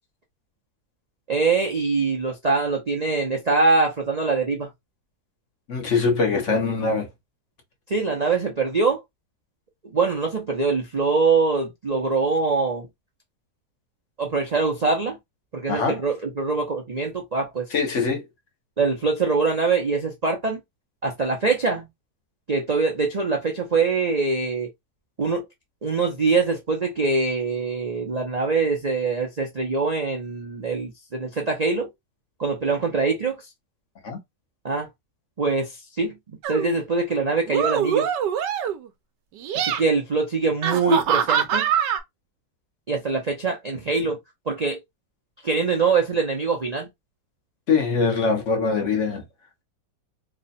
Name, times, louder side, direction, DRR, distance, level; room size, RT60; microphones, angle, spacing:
voice 1, 1.3-4.7 7.9-9.0 9.9-12.9 14.2-15.2 15.5-17.7 18.8-20.6 21.0-21.9 22.5-24.7 25.2-25.4 25.8-31.9 32.4-33.4 34.6-34.9 35.4-35.7 36.0-36.1 36.5-38.1 39.5-41.7 42.9-44.2 44.5-44.8 45.4-46.9, right 4 dB, 65° right, 0.4 m, -23 dB
voice 2, 5.7-7.1 15.7-16.0 17.7-18.2 34.0-34.2 47.7-49.2, left 4 dB, 50° left, 1.0 m, -23 dB
sound 1, 36.4-36.7 37.5-38.9 39.4-39.8 40.6-42.0, right 8 dB, 80° right, 1.2 m, -23 dB
3.3 x 2.1 x 4.1 m
omnidirectional pair, 1.9 m